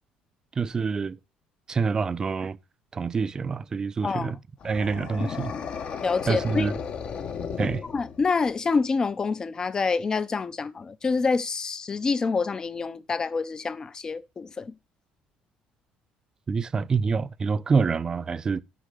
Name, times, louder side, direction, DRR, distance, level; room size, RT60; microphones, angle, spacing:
voice 1, 0.6-1.2 1.7-2.6 2.9-4.4 4.6-5.5 6.3-6.7 7.6-7.8 16.5-18.6, right 5 dB, 25° right, 0.4 m, -26 dB
sound 1, 4.6-8.5, left 6 dB, 45° left, 0.9 m, -34 dB
voice 2, 6.0-6.7 7.9-14.7, left 4 dB, 25° left, 0.5 m, -27 dB
6.2 x 5.6 x 6.7 m
cardioid pair, 130°, 3 cm